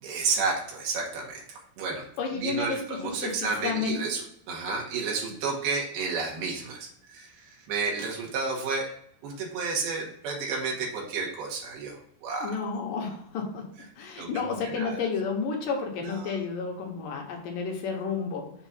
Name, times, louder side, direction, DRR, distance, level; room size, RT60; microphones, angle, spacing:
voice 1, 0.0-8.9 9.2-12.6 14.2-15.1 16.0-16.4, right 4 dB, 80° right, -1 dB, 3.0 m, -32 dB
voice 2, 2.2-2.8 3.2-3.4 3.6-4.0 12.4-13.6 14.0-18.5, left 5 dB, 70° left, 1 dB, 2.4 m, -31 dB
7.1 x 2.5 x 5.5 m, 0.73 s
omnidirectional pair, 4.5 m